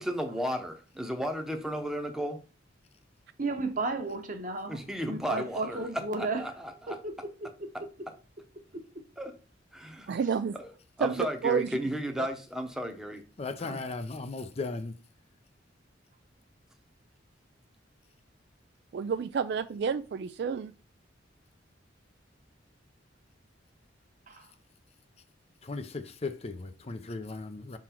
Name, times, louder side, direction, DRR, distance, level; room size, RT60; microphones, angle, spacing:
voice 1, 0.0-2.4 4.7-5.9 6.2-7.0 9.2-9.3 9.7-10.1 10.5-10.7 11.0-13.2 13.6-13.8, equal, 5° right, 0.8 m, -34 dB
voice 2, 3.4-6.4 6.9-7.1 24.3-24.5, right 3 dB, 45° right, 1.1 m, -33 dB
voice 3, 10.1-10.6 11.0-11.7 12.2-12.3 18.9-20.7, right 6 dB, 60° right, 0.3 m, -30 dB
voice 4, 13.4-15.0 25.6-27.8, left 3 dB, 35° left, 0.5 m, -37 dB
6.1 x 3.8 x 4.4 m
head